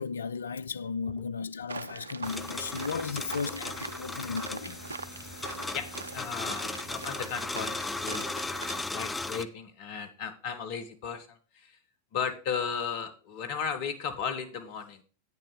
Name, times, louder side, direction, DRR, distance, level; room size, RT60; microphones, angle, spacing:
voice 1, 0.0-4.8, left 5 dB, 70° left, 0.3 m, -35 dB
sound 1, 1.7-8.8, right 4 dB, 75° right, 0.4 m, -42 dB
sound 2, 2.2-9.4, left 2 dB, 10° left, 0.5 m, -37 dB
voice 2, 6.1-11.8 12.1-15.0, left 7 dB, 45° left, 1.4 m, -36 dB
8.6 x 6.8 x 4.9 m
figure-of-eight pair, 90°, 0 cm